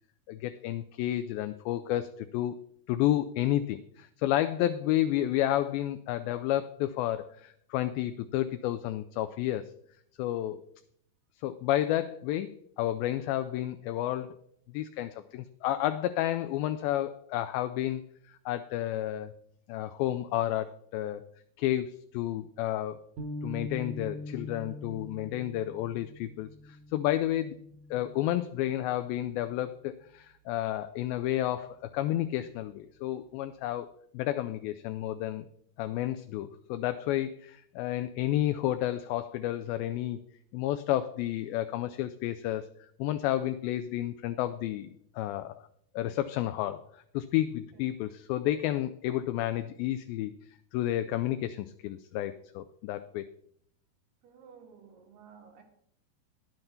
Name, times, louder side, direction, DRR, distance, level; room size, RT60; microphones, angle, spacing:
voice 1, 0.3-2.6 2.9-9.7 10.2-10.6 11.4-14.4 14.7-18.0 18.3-19.3 19.7-21.2 21.6-23.0 23.4-27.5 27.9-35.5 35.8-40.2 40.5-42.7 43.0-45.5 46.0-50.3 50.7-53.2, left 13 dB, 80° left, 2.2 m, -31 dB
sound 1, 23.2-29.6, left 2 dB, 65° right, 1.9 m, -43 dB
voice 2, 54.2-55.6, right 6 dB, 90° right, 3.6 m, -54 dB
10.5 x 7.9 x 5.7 m
omnidirectional pair, 4.4 m